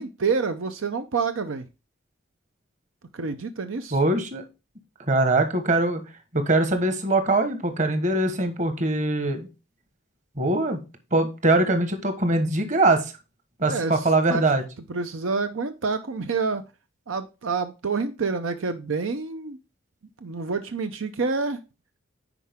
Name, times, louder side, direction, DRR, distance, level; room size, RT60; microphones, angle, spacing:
voice 1, 0.0-1.7 3.1-4.0 13.7-14.4 14.9-16.6 17.1-19.6 20.2-21.6, right 4 dB, 80° right, 9 dB, 0.7 m, -28 dB
voice 2, 3.9-4.4 5.1-6.0 6.3-9.5 10.4-10.8 11.1-13.0 13.6-14.6, right 2 dB, 40° right, 8 dB, 1.3 m, -22 dB
9.9 x 4.8 x 3.6 m, 0.28 s
head